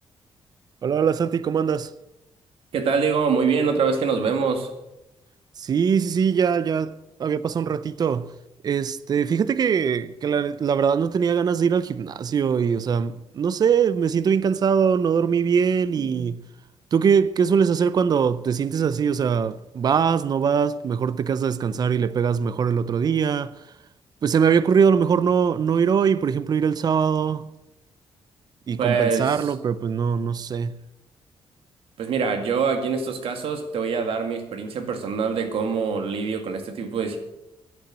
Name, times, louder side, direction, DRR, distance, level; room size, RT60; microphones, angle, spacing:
voice 1, 0.8-1.9 5.6-6.9 7.2-8.3 8.6-16.4 16.9-23.5 24.2-27.5 28.7-30.8, right 7 dB, 45° right, 0.6 m, -22 dB
voice 2, 2.7-4.7 16.1-16.3 28.8-29.5 32.0-37.2, right 5 dB, 70° right, 2.1 m, -24 dB
10.5 x 8.8 x 8.6 m
cardioid pair, 120°, 10 cm